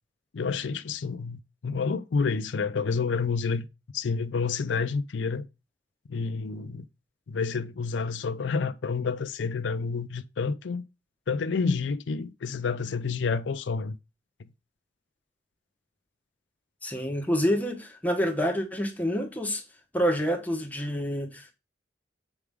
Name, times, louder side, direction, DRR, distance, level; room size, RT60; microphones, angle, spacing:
voice 1, 0.3-3.7 3.9-5.5 6.1-6.9 7.3-10.8 11.3-14.0, left 5 dB, 80° left, 0.5 m, -29 dB
voice 2, 16.8-19.6 19.9-21.5, equal, 10° left, 1.1 m, -27 dB
6.9 x 4.8 x 3.5 m
head